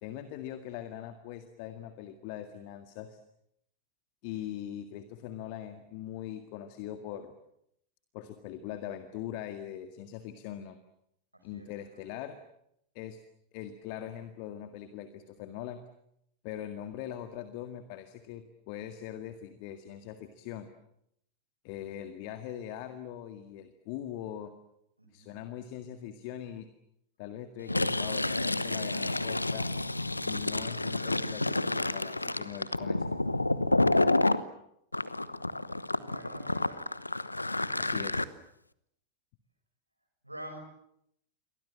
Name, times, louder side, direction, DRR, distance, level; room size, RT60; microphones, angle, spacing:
voice 1, 0.0-3.2 4.2-7.3 8.1-10.8 11.4-12.4 12.9-13.2 13.5-15.8 16.4-20.7 21.6-24.5 25.1-26.7 27.2-29.7 30.2-33.1 37.8-38.3, left 11 dB, 45° left, 9 dB, 1.9 m, -41 dB
voice 2, 25.0-25.4 36.0-36.9 40.2-40.6, right 1 dB, 85° right, 4 dB, 6.9 m, -45 dB
Fill (with liquid), 27.6-34.4 34.9-38.2, left 2 dB, 85° left, 1.0 m, -29 dB
29.0 x 23.5 x 7.5 m, 0.77 s
figure-of-eight pair, 90°, 0 cm